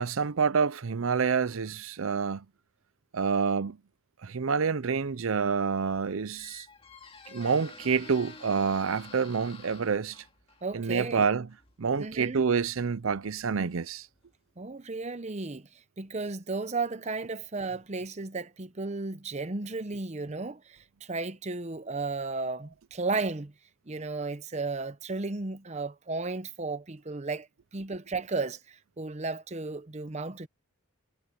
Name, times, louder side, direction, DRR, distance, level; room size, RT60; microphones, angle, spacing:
voice 1, 0.0-2.4 3.1-3.8 4.2-6.7 7.3-10.2 10.7-11.5 11.8-14.1, right 5 dB, 75° right, 0.6 m, -28 dB
Squeak, 5.6-14.4, left 4 dB, 25° left, 2.2 m, -51 dB
voice 2, 10.6-11.3 12.0-12.4 14.6-23.5 23.9-30.5, right 3 dB, 35° right, 0.8 m, -34 dB
head